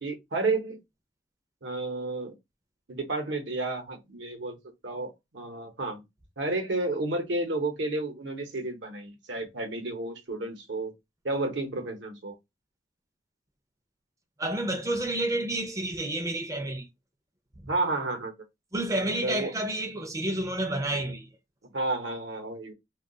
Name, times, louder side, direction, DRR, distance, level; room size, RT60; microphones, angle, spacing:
voice 1, 0.0-0.8 1.6-2.3 2.9-4.6 4.8-6.0 6.4-10.9 11.2-12.3 17.7-18.3 19.2-19.5 21.7-22.7, right 2 dB, 70° right, 0.8 m, -31 dB
voice 2, 14.4-16.9 17.6-17.7 18.7-21.3, right 1 dB, 15° right, 0.4 m, -30 dB
2.3 x 2.3 x 3.7 m
head